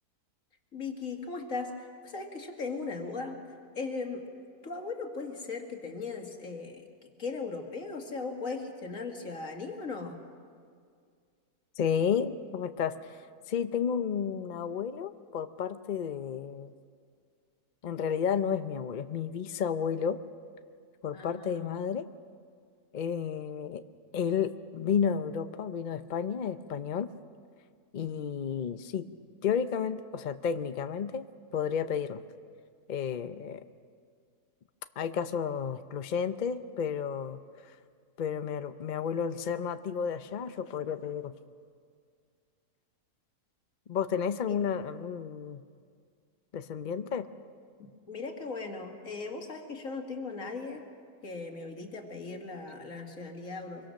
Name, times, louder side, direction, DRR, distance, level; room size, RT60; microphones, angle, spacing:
voice 1, 0.7-3.4 3.8-4.3 4.6-6.9 7.2-10.2 21.1-21.7 44.5-44.6 48.1-50.8 51.2-53.9, left 4 dB, 50° left, 3 dB, 2.4 m, -38 dB
voice 2, 11.8-16.7 17.8-20.2 21.0-22.1 22.9-23.8 24.1-27.1 27.9-29.1 29.4-31.3 31.5-32.2 32.9-33.6 35.0-37.4 38.2-41.3 43.9-45.6 46.5-47.3, left 7 dB, 70° left, 10 dB, 0.4 m, -32 dB
24.0 x 23.5 x 6.4 m, 2.1 s
omnidirectional pair, 1.8 m